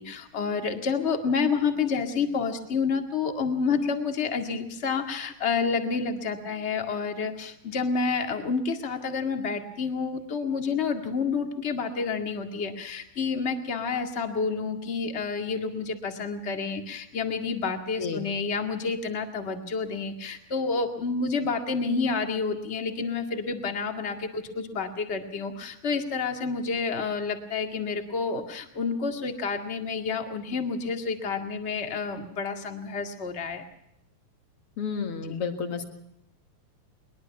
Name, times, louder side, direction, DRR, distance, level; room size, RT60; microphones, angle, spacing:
voice 1, 0.0-33.6 35.2-35.4, left 5 dB, 25° left, 5 dB, 1.4 m, -29 dB
voice 2, 34.8-35.9, left 5 dB, 45° left, 6 dB, 2.4 m, -31 dB
21.5 x 21.5 x 5.9 m, 0.80 s
omnidirectional pair, 4.1 m